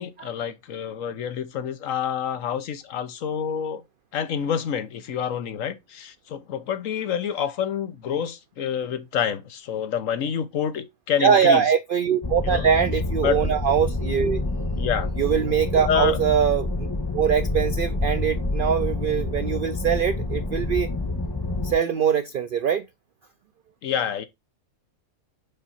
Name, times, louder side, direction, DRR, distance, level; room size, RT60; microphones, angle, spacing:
voice 1, 0.0-3.8 4.1-11.6 12.5-12.7 13.2-13.4 14.8-15.1 15.9-16.2 23.8-24.2, left 8 dB, 70° left, 1.2 m, -27 dB
voice 2, 11.2-14.4 15.2-16.9 17.1-20.9 21.6-22.9, right 7 dB, 85° right, 0.4 m, -22 dB
sound 1, 12.2-21.7, left 2 dB, 20° left, 1.2 m, -27 dB
5.5 x 4.0 x 5.5 m
omnidirectional pair, 1.5 m